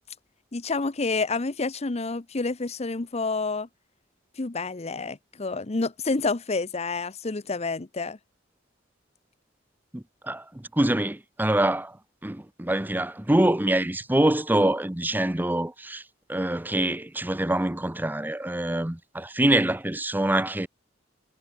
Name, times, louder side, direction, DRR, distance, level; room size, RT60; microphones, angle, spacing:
voice 1, 0.5-3.7 4.4-8.2, left 3 dB, 35° left, 0.8 m, -29 dB
voice 2, 9.9-12.0 12.2-16.0 16.3-20.7, right 1 dB, 10° right, 0.7 m, -25 dB
head